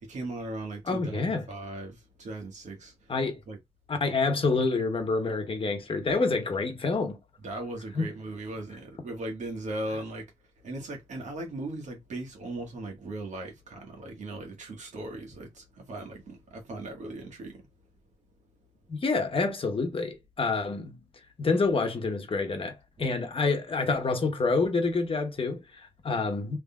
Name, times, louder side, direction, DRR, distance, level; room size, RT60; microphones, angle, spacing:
voice 1, 0.0-2.9 3.5-3.6 7.4-10.2 10.6-17.6, right 2 dB, 80° right, 1.4 m, -38 dB
voice 2, 0.9-1.4 3.1-3.4 3.9-7.2 7.9-8.1 18.9-21.0 21.4-26.6, left 3 dB, 50° left, 0.9 m, -27 dB
3.6 x 3.1 x 2.3 m
wide cardioid pair, 105°, 12 cm